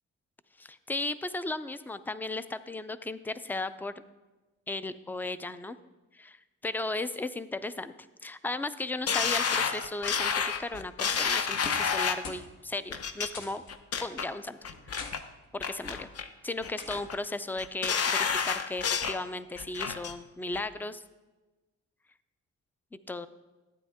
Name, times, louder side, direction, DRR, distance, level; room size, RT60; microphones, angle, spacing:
voice 1, 0.6-4.0 4.7-5.8 6.1-7.9 8.2-13.6 14.0-14.6 14.9-15.0 15.5-16.1 16.4-21.0 22.9-23.3, left 2 dB, 5° left, 14 dB, 0.4 m, -36 dB
sound 1, 9.1-12.3 12.9-13.3 13.7-14.3 14.6-15.2 15.6-16.3 16.6-17.2 17.6-19.2 19.6-20.1 20.5-20.6, left 6 dB, 50° left, 0.8 m, -29 dB
sound 2, 11.4-12.0 12.2-12.5 12.8-12.9 13.3-13.7 14.7-15.1 15.9-16.1 16.8-17.0 18.3-18.6, left 4 dB, 70° left, 1.4 m, -43 dB
12.0 x 8.9 x 3.6 m, 1.2 s
cardioid pair, 90°, 30 cm